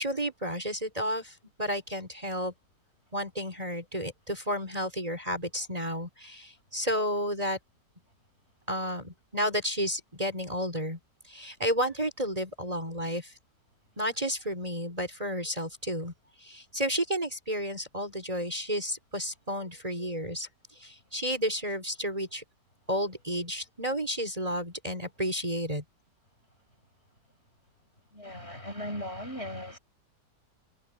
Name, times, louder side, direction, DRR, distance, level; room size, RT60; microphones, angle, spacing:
voice 1, 0.0-2.5 3.1-7.6 8.7-11.0 11.2-13.3 14.0-16.1 16.4-22.4 22.9-25.8, equal, 20° right, 5.2 m, -32 dB
voice 2, 28.1-29.8, equal, 35° left, 7.9 m, -38 dB
omnidirectional pair, 1.8 m